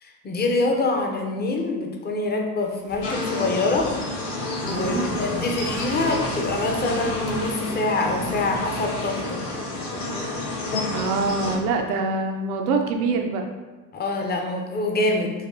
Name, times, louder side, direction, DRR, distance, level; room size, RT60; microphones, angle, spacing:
voice 1, 0.0-3.9 4.6-9.4 13.9-15.3, left 2 dB, 20° left, 2 dB, 0.6 m, -25 dB
sound 1, 2.6-4.2 4.6-7.7 8.0-11.8, right 3 dB, 35° right, 0.6 m, -41 dB
sound 2, 3.0-11.6, left 2 dB, 70° left, 1.4 m, -30 dB
voice 2, 4.6-5.1 10.9-13.5, right 4 dB, 75° right, 4 dB, 0.6 m, -25 dB
4.1 x 2.6 x 2.7 m, 1.3 s
hypercardioid pair, 75°, 46 cm